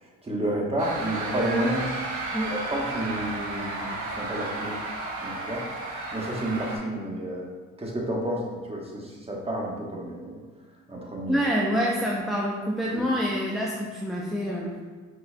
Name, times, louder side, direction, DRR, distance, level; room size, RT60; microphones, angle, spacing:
voice 1, 0.2-1.9 2.5-4.8 5.2-5.7 6.1-7.5 7.8-10.4 10.9-11.4 12.9-13.1, right 1 dB, 20° right, -2 dB, 1.1 m, -30 dB
sound 1, 0.8-6.8, right 2 dB, 80° right, 1.0 m, -33 dB
voice 2, 11.3-14.8, equal, ahead, -4 dB, 0.5 m, -27 dB
5.2 x 4.2 x 2.2 m, 1.5 s
cardioid pair, 90°, 30 cm